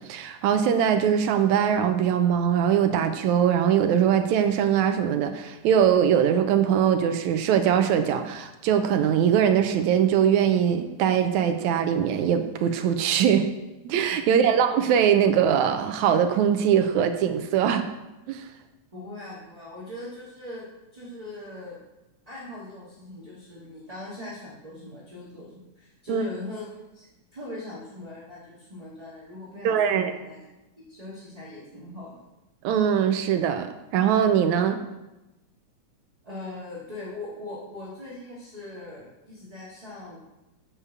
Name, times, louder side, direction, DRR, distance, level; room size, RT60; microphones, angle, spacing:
voice 1, 0.0-13.5 13.9-17.9 18.3-18.4 26.1-26.2 29.6-30.1 32.6-34.8, right 8 dB, 80° right, 8 dB, 2.1 m, -22 dB
voice 2, 14.3-14.6 18.9-21.8 22.3-26.7 26.9-27.1 27.3-30.4 30.8-32.2 36.2-40.2, left 2 dB, 15° right, -7 dB, 2.3 m, -40 dB
8.3 x 7.3 x 6.9 m, 1.0 s
omnidirectional pair, 3.4 m